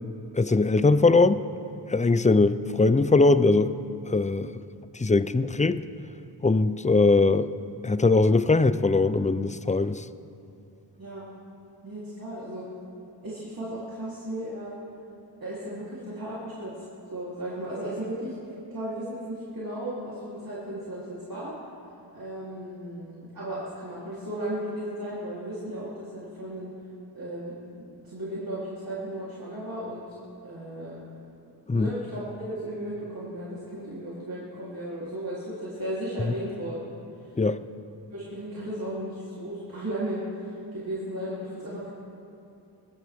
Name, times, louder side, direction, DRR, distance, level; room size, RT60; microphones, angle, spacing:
voice 1, 0.3-1.4 1.9-3.7 4.1-4.5 5.0-5.8 6.4-7.5 7.8-10.0 31.7-31.9 37.4-37.6, left 3 dB, 15° left, 14 dB, 0.4 m, -21 dB
voice 2, 11.8-12.7 13.2-14.8 15.4-16.8 17.1-18.3 18.7-21.5 22.1-26.7 27.1-30.0 30.4-31.0 31.7-36.8 38.1-41.9, right 1 dB, 50° right, -9 dB, 3.4 m, -35 dB
23.5 x 14.0 x 3.6 m, 2.8 s
wide cardioid pair, 75°, 45 cm